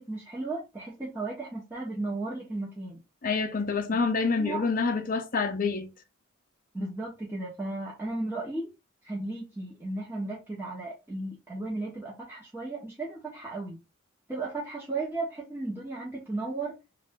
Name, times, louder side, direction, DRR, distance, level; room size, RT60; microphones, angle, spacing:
voice 1, 0.0-3.0 3.9-4.0 4.3-4.6 6.7-8.7 9.0-13.8 14.3-16.8, right 2 dB, 10° right, 1.0 m, -35 dB
voice 2, 3.2-5.9, left 4 dB, 40° left, 0.6 m, -27 dB
3.2 x 2.4 x 3.6 m
head